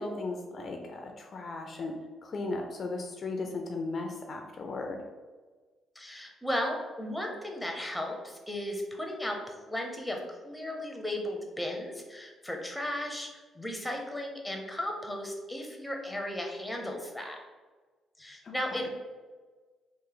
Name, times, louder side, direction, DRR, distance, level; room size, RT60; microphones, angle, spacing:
voice 1, 0.0-2.0 2.2-5.0 18.4-18.5, left 3 dB, 45° left, 3 dB, 0.4 m, -36 dB
voice 2, 5.9-17.4 18.2-18.9, left 1 dB, 5° left, 2 dB, 0.7 m, -35 dB
3.2 x 2.5 x 3.9 m, 1.3 s
cardioid pair, 90°, 0 cm